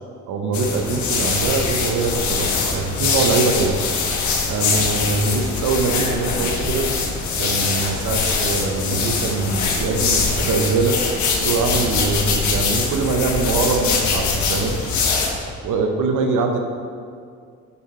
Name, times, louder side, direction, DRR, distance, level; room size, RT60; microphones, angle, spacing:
voice 1, 0.3-3.8 4.5-6.9 7.4-11.0 11.4-14.9 15.6-16.6, right 4 dB, 80° right, 4 dB, 0.8 m, -23 dB
sound 1, 0.5-15.3, left 4 dB, 70° left, 1.3 m, -22 dB
8.3 x 5.8 x 4.3 m, 2.2 s
cardioid pair, 90°, 30 cm